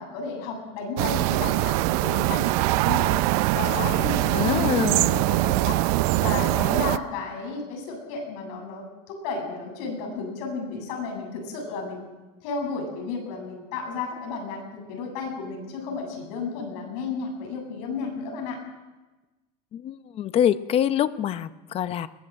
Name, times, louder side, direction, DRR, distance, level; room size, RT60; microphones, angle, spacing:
voice 1, 0.0-3.2 3.5-5.8 6.2-12.0 12.4-18.6, left 4 dB, 70° left, 2 dB, 7.8 m, -33 dB
sound 1, 1.0-7.0, right 18 dB, 65° right, 0.7 m, -23 dB
voice 2, 4.3-5.2 19.7-22.1, left 10 dB, 30° left, 13 dB, 0.7 m, -25 dB
22.0 x 18.0 x 7.6 m, 1.2 s
cardioid pair, 165°, 20 cm